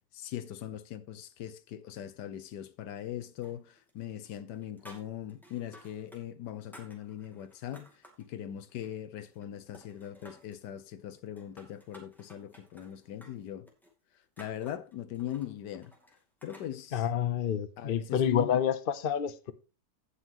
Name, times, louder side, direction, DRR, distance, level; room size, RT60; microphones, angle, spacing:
voice 1, 0.1-13.7 14.4-15.9 16.4-17.1 17.8-18.6, left 11 dB, 80° left, 1.4 m, -40 dB
sound 1, 3.4-4.0 4.2-6.2 6.5-8.3 8.7-9.5 9.7-10.6 11.2-16.7, equal, ahead, 2.3 m, -56 dB
voice 2, 16.9-19.5, left 9 dB, 50° left, 0.7 m, -28 dB
16.5 x 5.8 x 3.0 m
omnidirectional pair, 1.8 m